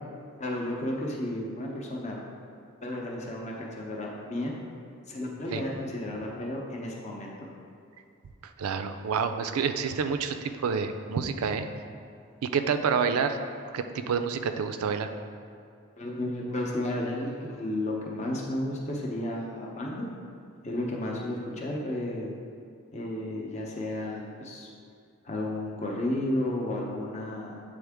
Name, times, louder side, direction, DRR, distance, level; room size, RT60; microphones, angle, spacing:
voice 1, 0.4-2.2 2.8-4.6 5.1-7.3 16.0-20.1 20.6-22.3 22.9-24.7 25.2-27.6, left 1 dB, 30° left, -2 dB, 0.7 m, -32 dB
voice 2, 8.6-11.7 12.5-13.4 13.7-15.1, right 6 dB, 80° right, 8 dB, 0.4 m, -28 dB
7.8 x 3.7 x 3.5 m, 2.3 s
head